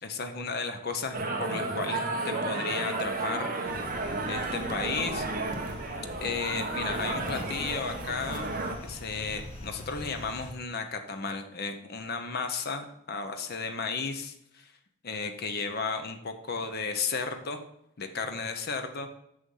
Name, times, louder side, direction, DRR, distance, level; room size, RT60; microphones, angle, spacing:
voice 1, 0.0-3.8 4.3-5.3 6.2-8.5 8.8-14.7 15.0-17.6 18.0-19.1, left 4 dB, 45° left, 7 dB, 0.8 m, -34 dB
sound 1, 1.1-8.8, right 2 dB, 40° right, 1.2 m, -32 dB
sound 2, 3.6-10.5, left 1 dB, 30° left, 1.3 m, -43 dB
6.9 x 6.6 x 5.5 m, 0.78 s
head